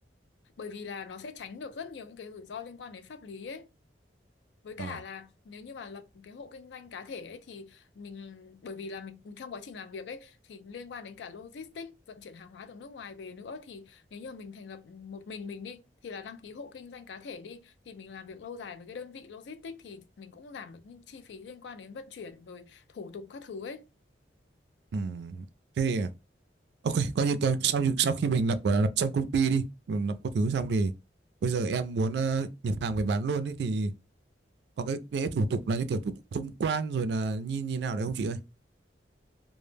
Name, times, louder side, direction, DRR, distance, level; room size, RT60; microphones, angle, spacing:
voice 1, 0.6-3.7 4.6-23.9, left 5 dB, 75° left, 0.4 m, -43 dB
voice 2, 24.9-25.4 25.8-26.1 26.8-30.9 31.4-33.9 34.8-38.4, right 4 dB, 65° right, 0.3 m, -28 dB
2.0 x 2.0 x 3.1 m
head